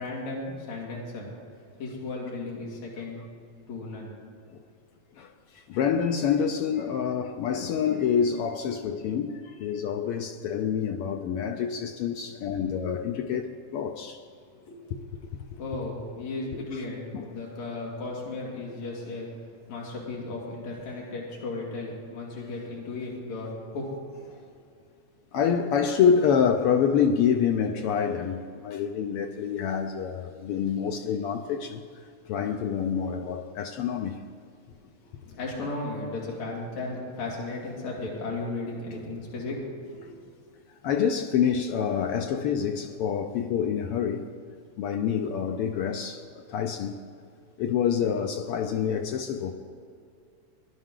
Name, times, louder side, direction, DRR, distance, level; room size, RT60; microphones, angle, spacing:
voice 1, 0.0-1.3 1.8-3.2 3.7-4.1 14.7-14.8 15.5-19.3 19.7-24.5 35.0-40.2, left 2 dB, 70° left, 3.6 m, -35 dB
voice 2, 5.1-14.2 16.7-16.8 17.1-17.3 25.3-31.8 32.3-34.2 40.8-44.3 44.8-47.0 47.6-49.5, left 7 dB, 85° left, 1.2 m, -27 dB
19.0 x 11.0 x 3.8 m
omnidirectional pair, 3.3 m